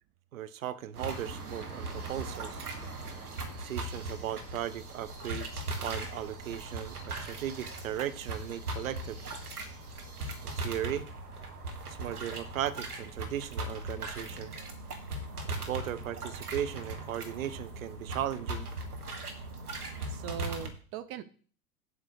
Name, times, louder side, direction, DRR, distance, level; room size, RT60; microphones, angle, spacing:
voice 1, 0.3-2.6 3.5-9.2 10.4-11.1 11.8-14.5 15.4-18.7, right 11 dB, 65° right, 12 dB, 0.9 m, -37 dB
sound 1, 0.9-20.7, right 2 dB, 80° right, 1.8 m, -39 dB
voice 2, 20.1-21.2, right 10 dB, 30° right, 11 dB, 0.6 m, -40 dB
8.0 x 7.6 x 4.7 m, 0.42 s
figure-of-eight pair, 85°, 44 cm